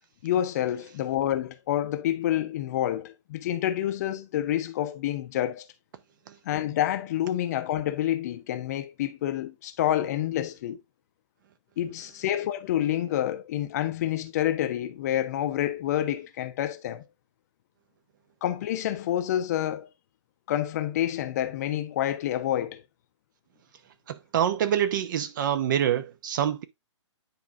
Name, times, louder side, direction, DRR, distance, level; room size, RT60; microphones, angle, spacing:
voice 1, 0.2-5.7 6.4-10.8 11.8-17.0 18.4-19.9 20.5-22.8, left 12 dB, 35° left, 0.7 m, -28 dB
voice 2, 24.1-26.6, right 10 dB, 40° right, 0.9 m, -26 dB
9.6 x 4.7 x 2.5 m
hypercardioid pair, 150°, 16 cm